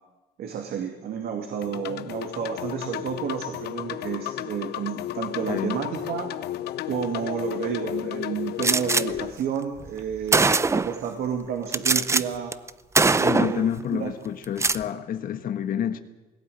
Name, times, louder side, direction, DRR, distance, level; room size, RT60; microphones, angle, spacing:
voice 1, 0.4-6.3 6.9-10.5 10.7-12.5 13.2-13.6 13.9-14.1, right 7 dB, 65° right, 2.5 m, -30 dB
sound 1, 1.6-9.3, left 13 dB, 75° left, 0.9 m, -33 dB
voice 2, 5.5-5.8 13.2-16.0, left 9 dB, 55° left, 1.4 m, -28 dB
Gunshot gunfire, 8.6-9.0 9.9-10.0 10.3-11.0 11.7-12.2 12.5-12.7 12.9-13.6 14.4-14.8, right 3 dB, 15° right, 0.6 m, -21 dB
18.0 x 17.0 x 9.3 m
cardioid pair, 110°, 17 cm